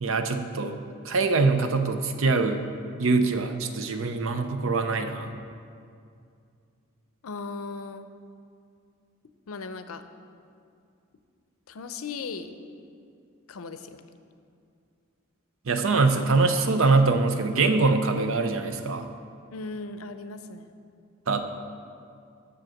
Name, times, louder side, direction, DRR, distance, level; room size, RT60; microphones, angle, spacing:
voice 1, 0.0-2.6 3.0-5.3 15.7-19.1 21.3-21.4, right 3 dB, 70° right, 8 dB, 0.6 m, -23 dB
voice 2, 7.2-8.1 9.5-10.0 11.7-12.5 13.5-14.0 19.5-20.7, left 4 dB, 80° left, 10 dB, 0.5 m, -37 dB
7.6 x 6.5 x 6.4 m, 2.4 s
head